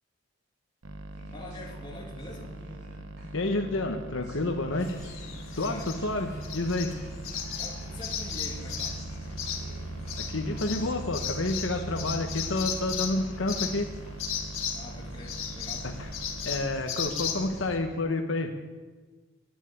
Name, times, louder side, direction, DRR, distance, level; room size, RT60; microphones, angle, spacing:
sound 1, 0.8-16.8, right 1 dB, 85° right, 1.0 m, -43 dB
Laughter, 1.1-14.1 14.4-14.5, equal, 50° right, 5.2 m, -53 dB
voice 1, 1.3-2.6 5.6-5.9 7.6-9.0 14.7-15.9, left 1 dB, 20° left, -1 dB, 2.1 m, -44 dB
voice 2, 3.3-5.0 5.5-7.0 10.3-13.9 16.0-16.1 16.4-18.5, left 2 dB, 70° left, 4 dB, 1.1 m, -29 dB
sound 2, 4.8-17.8, left 5 dB, 85° left, 1.9 m, -36 dB
11.0 x 10.0 x 9.5 m, 1.4 s
head